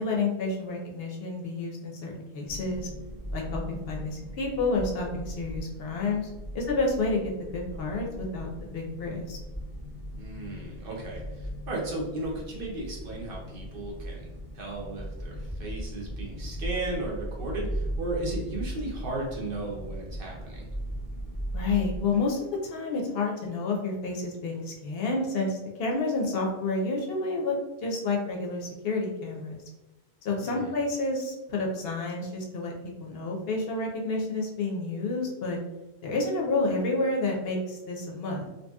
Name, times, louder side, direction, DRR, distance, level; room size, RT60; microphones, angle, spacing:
voice 1, 0.0-2.9 3.3-6.3 6.5-7.2 7.5-9.4 21.5-27.6 27.8-29.6 30.2-35.6 36.0-38.5, left 3 dB, 65° left, -1 dB, 0.7 m, -30 dB
sound 1, 2.5-22.0, equal, 15° right, 0.7 m, -38 dB
voice 2, 10.2-14.2 14.5-20.7 30.4-30.7, right 2 dB, 60° right, -2 dB, 0.8 m, -35 dB
2.8 x 2.7 x 2.2 m, 1.1 s
omnidirectional pair, 1.1 m